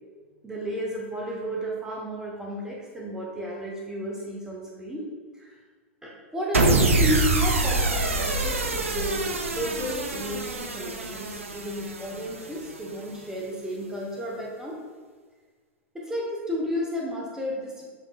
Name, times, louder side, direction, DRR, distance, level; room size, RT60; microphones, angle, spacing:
voice 1, 0.4-5.1 5.4-5.5 6.0-14.8 15.9-17.8, equal, 10° right, -3 dB, 0.8 m, -32 dB
sound 1, 6.5-12.9, right 2 dB, 80° right, 0.5 m, -25 dB
7.1 x 3.1 x 2.3 m, 1.5 s
figure-of-eight pair, 95°, 7 cm